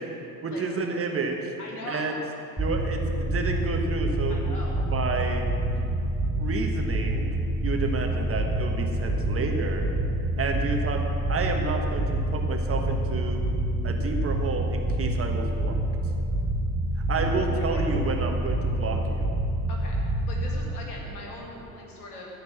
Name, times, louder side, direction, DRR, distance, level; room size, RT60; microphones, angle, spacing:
voice 1, 0.4-1.5 1.9-2.2 2.6-4.4 4.9-5.4 5.7-5.9 6.4-7.3 7.6-9.9 10.4-11.0 11.3-13.5 13.8-15.8 17.1-19.2, right 4 dB, 30° right, 3 dB, 1.4 m, -30 dB
voice 2, 1.6-2.1 4.3-4.8 17.2-17.9 19.7-20.0 20.3-22.4, left 1 dB, 80° left, -2 dB, 2.0 m, -40 dB
sound 1, 2.6-20.6, right 1 dB, 5° right, 2.8 m, -27 dB
14.0 x 5.3 x 7.5 m, 2.7 s
figure-of-eight pair, 60°, 45 cm